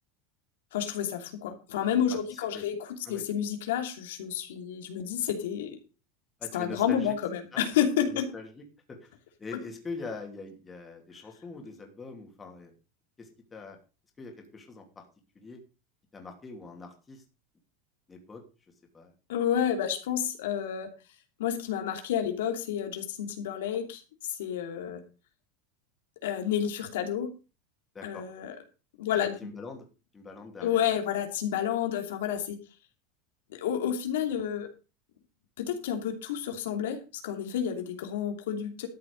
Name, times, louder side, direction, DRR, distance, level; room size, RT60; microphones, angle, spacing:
voice 1, 0.7-5.8 6.5-8.3 19.3-20.9 21.4-24.0 24.3-25.0 26.2-27.3 28.0-28.5 29.0-29.5 30.6-32.6 33.5-34.7 35.6-38.9, left 9 dB, 90° left, 5 dB, 2.8 m, -30 dB
voice 2, 2.1-2.6 3.0-3.2 6.4-7.1 7.5-7.6 8.1-8.6 9.0-9.1 9.4-12.7 13.2-13.8 14.2-15.0 15.3-15.6 16.1-17.2 18.1-18.4 18.9-19.1 27.9-28.2 29.1-29.8 30.1-30.9, left 4 dB, 15° left, 2 dB, 2.7 m, -43 dB
13.0 x 7.5 x 5.2 m, 0.32 s
supercardioid pair, 165°, 0 cm